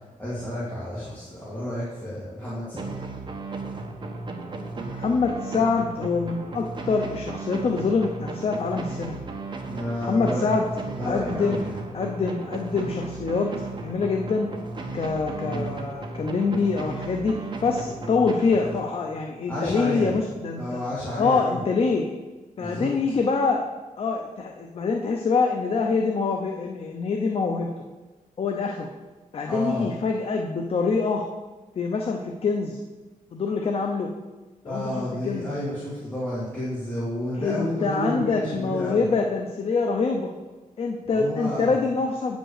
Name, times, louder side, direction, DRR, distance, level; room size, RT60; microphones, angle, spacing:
voice 1, 0.2-2.9 9.6-10.5 10.9-11.7 15.4-15.7 19.5-20.1 20.6-21.6 22.6-22.9 29.5-29.8 34.6-39.0 41.1-41.7, left 1 dB, 10° left, -9 dB, 2.3 m, -31 dB
sound 1, 2.8-19.3, right 3 dB, 35° right, 1.1 m, -35 dB
voice 2, 5.0-9.2 10.0-10.7 11.1-11.6 11.9-14.5 14.9-17.4 17.6-20.8 21.2-22.1 22.6-23.6 24.0-27.7 28.4-28.9 29.3-31.3 31.8-32.8 33.3-34.1 34.6-35.5 37.3-40.3 40.8-42.4, left 4 dB, 45° left, 2 dB, 0.7 m, -25 dB
8.8 x 5.3 x 6.6 m, 1.2 s
wide cardioid pair, 140°, 14 cm